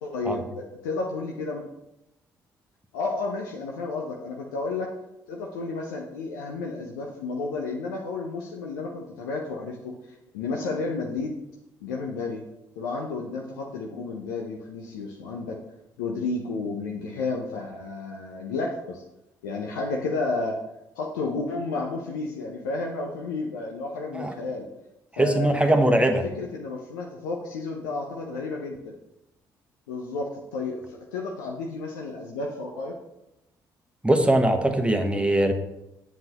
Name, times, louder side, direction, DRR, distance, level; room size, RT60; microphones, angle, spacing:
voice 1, 0.0-1.6 2.9-4.9 5.3-9.9 10.3-11.4 11.8-12.4 12.8-15.6 16.0-19.0 19.4-20.6 21.0-24.7 25.2-25.8 26.2-28.9 29.9-33.0, left 3 dB, 85° left, 0 dB, 0.7 m, -32 dB
voice 2, 25.1-26.2 34.0-35.5, right 1 dB, 10° right, 5 dB, 1.1 m, -21 dB
7.4 x 7.0 x 2.9 m, 0.89 s
hypercardioid pair, 45°, 10 cm